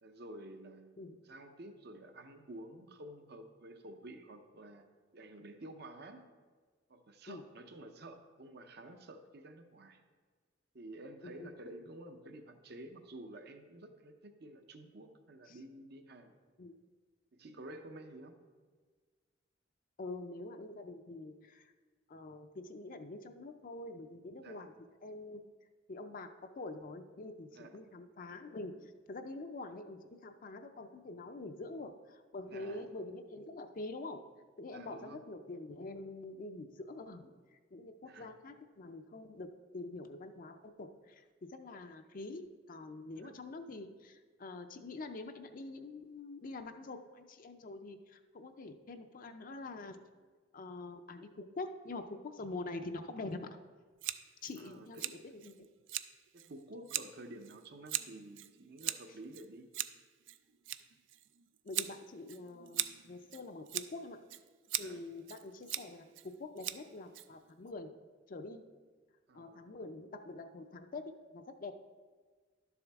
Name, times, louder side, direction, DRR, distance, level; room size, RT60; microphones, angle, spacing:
voice 1, 0.0-0.9 1.2-4.9 5.1-6.3 6.9-10.0 10.7-16.3 17.3-18.4 24.4-24.7 27.5-27.8 32.5-32.9 34.7-35.2 38.0-38.3 43.1-43.3 54.6-55.1 56.3-59.7 64.7-65.0 69.3-69.7, right 1 dB, 55° right, 7 dB, 0.7 m, -51 dB
voice 2, 20.0-21.7 22.1-24.7 25.0-25.4 25.9-34.2 34.6-39.5 39.7-50.0 50.5-53.6 54.4-55.7 61.6-64.2 64.8-67.9 68.3-68.6 69.3-71.7, left 2 dB, 45° left, 7 dB, 0.5 m, -45 dB
Scissors, 54.0-67.7, right 13 dB, 70° right, 0.4 m, -42 dB
11.5 x 7.0 x 3.5 m, 1.5 s
head